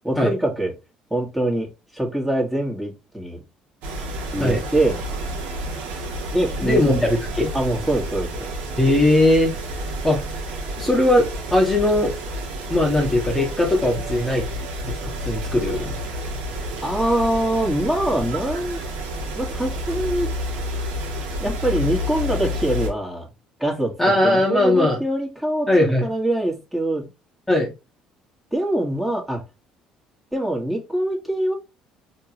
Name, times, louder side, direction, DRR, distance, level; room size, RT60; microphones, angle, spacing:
voice 1, 0.0-0.7 1.1-3.4 4.3-5.0 6.3-7.0 7.5-8.5 16.8-18.8 19.4-20.3 21.4-23.3 23.6-24.0 24.2-27.1 28.5-29.4 30.3-31.5, right 1 dB, 5° right, -1 dB, 1.7 m, -24 dB
sound 1, 3.8-22.9, equal, 70° right, 1.5 m, -30 dB
voice 2, 6.6-7.5 8.8-9.5 10.0-10.2 10.8-12.1 12.7-14.4 14.8-16.0 24.0-25.0 25.7-26.1 27.5-27.7, left 1 dB, 10° left, -2 dB, 1.3 m, -19 dB
4.5 x 3.0 x 2.9 m, 0.26 s
hypercardioid pair, 65°, 3 cm